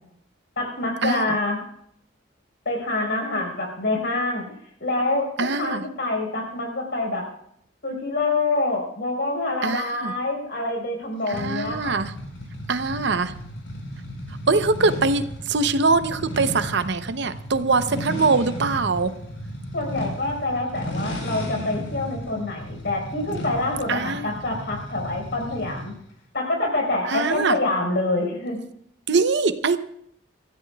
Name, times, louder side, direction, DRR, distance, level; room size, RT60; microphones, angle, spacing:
voice 1, 0.6-1.6 2.6-4.4 4.8-7.3 7.8-11.9 19.7-25.9 26.3-28.6, left 2 dB, 60° left, 1 dB, 4.7 m, -26 dB
voice 2, 5.4-5.8 9.6-10.1 11.3-12.1 12.7-13.3 14.5-19.1 23.9-24.4 27.1-27.6 29.1-29.8, right 4 dB, 65° right, 11 dB, 0.8 m, -23 dB
sound 1, 11.3-26.0, equal, 85° left, 4.5 m, -34 dB
25.5 x 14.5 x 2.4 m, 0.71 s
head